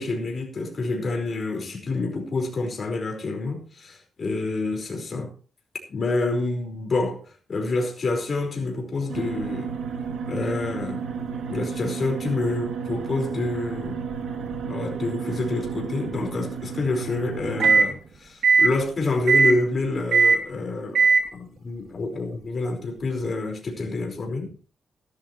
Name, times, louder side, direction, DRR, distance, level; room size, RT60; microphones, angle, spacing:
voice 1, 0.0-5.3 5.9-9.7 10.3-11.0 11.5-14.0 14.7-24.5, left 3 dB, 40° left, 4.8 m, -28 dB
sound 1, 9.1-17.9 18.4-18.8 19.3-19.6 20.1-20.4 21.0-21.3, right 4 dB, 75° right, 2.9 m, -24 dB
16.5 x 12.0 x 3.2 m
wide cardioid pair, 135°, 0 cm